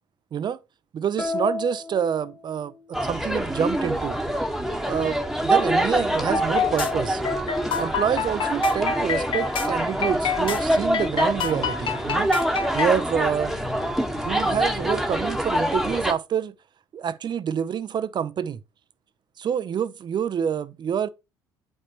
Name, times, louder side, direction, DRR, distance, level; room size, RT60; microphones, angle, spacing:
voice 1, 0.3-0.6 0.9-2.7 3.0-4.2 4.8-7.2 7.8-12.3 12.7-13.5 14.1-16.5 16.9-18.6 19.4-21.1, right 8 dB, 45° right, 0.6 m, -27 dB
sound 1, 1.2-3.0, left 3 dB, 20° left, 1.2 m, -32 dB
sound 2, 2.9-16.1, right 1 dB, ahead, 1.3 m, -25 dB
sound 3, 6.3-12.9, left 6 dB, 55° left, 1.3 m, -28 dB
8.3 x 5.4 x 3.0 m
hypercardioid pair, 60°, 10 cm